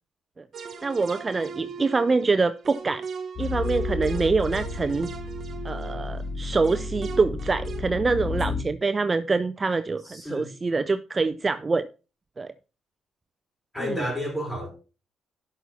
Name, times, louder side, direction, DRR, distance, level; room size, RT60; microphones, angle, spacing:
sound 1, 0.5-7.8, right 5 dB, 50° right, 1.2 m, -38 dB
voice 1, 0.8-3.0 3.4-5.1 5.6-11.9 12.4-12.5 13.8-14.0, right 4 dB, 30° right, 0.4 m, -25 dB
sound 2, 3.4-8.6, left 4 dB, 35° left, 2.1 m, -32 dB
voice 2, 10.0-10.5 13.7-14.7, left 1 dB, 10° left, 5.7 m, -31 dB
11.5 x 6.2 x 4.1 m
cardioid pair, 90°, 0 cm